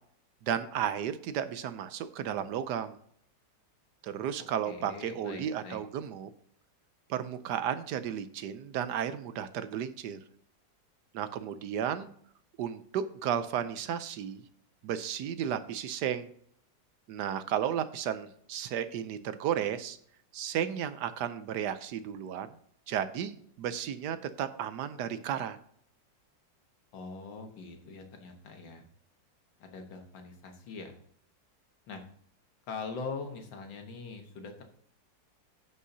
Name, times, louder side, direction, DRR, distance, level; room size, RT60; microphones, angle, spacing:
voice 1, 0.4-3.0 4.0-6.3 7.1-10.2 11.1-12.1 12.6-14.4 14.8-16.3 17.1-20.0 20.3-22.5 22.9-25.6, right 9 dB, 75° right, 12 dB, 1.1 m, -33 dB
voice 2, 4.7-5.8 26.9-28.9 29.6-31.0 31.9-32.0 32.7-34.6, left 4 dB, 85° left, 4 dB, 2.0 m, -42 dB
16.0 x 5.5 x 2.7 m, 0.64 s
omnidirectional pair, 2.0 m